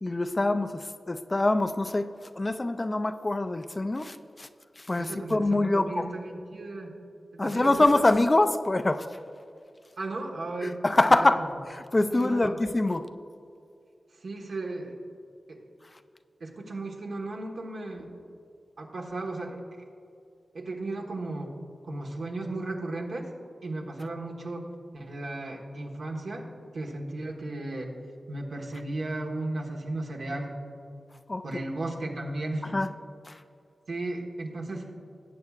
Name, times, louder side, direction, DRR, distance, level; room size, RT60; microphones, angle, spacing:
voice 1, 0.0-4.5 4.8-6.1 7.4-9.2 10.6-13.1 31.3-31.4 32.6-32.9 33.3-33.4, left 2 dB, 25° left, 10 dB, 0.4 m, -25 dB
voice 2, 5.0-6.9 7.3-8.0 10.0-10.8 11.1-11.3 12.1-12.6 14.2-15.0 15.5-15.6 16.4-18.1 18.8-19.6 20.5-21.5 21.8-23.3 23.6-24.7 24.9-26.5 26.7-27.9 28.3-30.6 31.4-32.7 33.9-34.9, right 2 dB, 75° right, 0 dB, 1.3 m, -35 dB
18.5 x 8.2 x 2.4 m, 2.4 s
wide cardioid pair, 100°, 0 cm